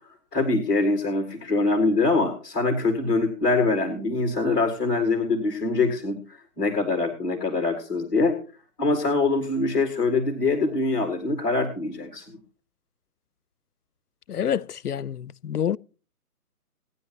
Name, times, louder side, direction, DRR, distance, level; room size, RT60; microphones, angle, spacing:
voice 1, 0.3-6.2 6.6-8.4 8.8-12.4, left 3 dB, 15° left, 1.8 m, -24 dB
voice 2, 14.3-15.8, left 8 dB, 75° left, 0.6 m, -27 dB
18.0 x 9.9 x 2.9 m
figure-of-eight pair, 155°, 46 cm